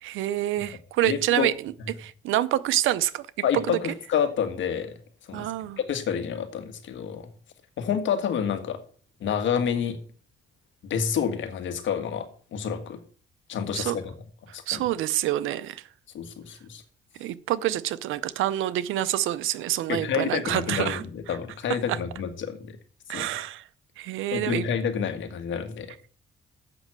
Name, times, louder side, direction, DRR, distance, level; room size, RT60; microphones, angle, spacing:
voice 1, 0.0-1.5 2.0-3.3 3.5-3.8 5.3-5.8 13.7-14.0 14.7-15.8 17.2-21.4 23.1-23.6 24.0-24.7, right 13 dB, 85° right, 0.6 m, -27 dB
voice 2, 1.0-1.5 3.4-4.9 5.3-7.3 7.8-8.8 9.2-10.0 10.8-13.0 13.5-14.1 14.5-14.9 16.1-16.8 19.9-22.8 23.1-23.3 24.3-25.9, left 7 dB, 70° left, 1.7 m, -29 dB
7.8 x 6.2 x 7.5 m
cardioid pair, 90°, 20 cm